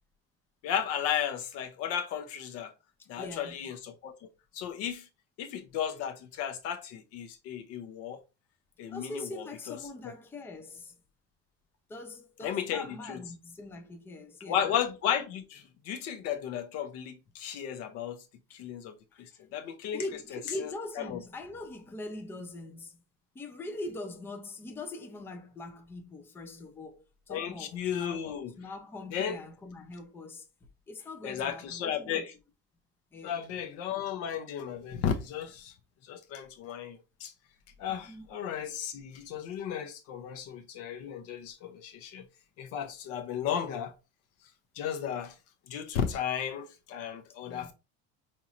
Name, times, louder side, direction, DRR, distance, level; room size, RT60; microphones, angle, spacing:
voice 1, 0.6-2.7 3.1-4.3 4.5-5.1 5.4-8.2 8.8-9.8 12.4-13.2 14.5-18.2 18.5-20.0 20.6-20.7 21.0-21.2 27.3-28.5 29.1-29.4 31.2-32.3 33.2-35.7 36.0-37.3 37.8-42.2 42.6-43.9 44.8-45.3 45.7-47.7, left 9 dB, 50° left, 0.6 m, -34 dB
voice 2, 3.2-3.7 8.9-10.9 11.9-14.7 19.9-23.0 23.3-28.2 28.6-30.5 30.9-32.2 33.1-33.4 37.9-38.3 47.5-47.7, left 2 dB, 10° left, 0.4 m, -42 dB
5.3 x 2.9 x 2.5 m
cardioid pair, 170°, 31 cm